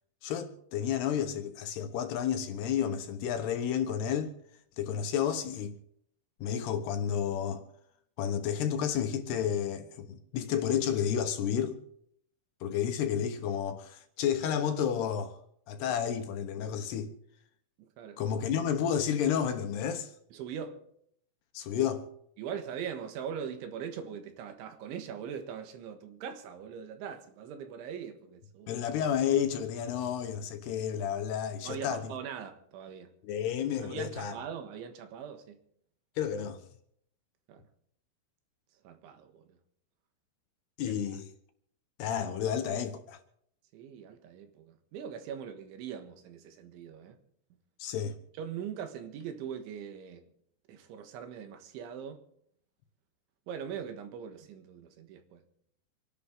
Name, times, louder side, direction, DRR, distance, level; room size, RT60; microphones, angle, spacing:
voice 1, 0.2-4.3 4.8-5.7 6.4-7.6 8.2-11.8 12.6-15.4 15.7-17.1 18.2-20.1 21.5-22.0 28.7-32.1 33.2-34.4 36.2-36.6 40.8-41.3 42.0-43.2 47.8-48.1, left 8 dB, 70° left, 3.0 m, -31 dB
voice 2, 17.8-18.2 20.3-20.8 22.4-28.8 31.6-33.1 33.8-35.6 37.5-37.6 38.9-39.5 40.9-41.2 43.7-47.2 48.4-50.3 50.7-52.2 53.5-55.4, right 8 dB, 85° right, 4.0 m, -41 dB
27.0 x 11.5 x 3.8 m
omnidirectional pair, 5.3 m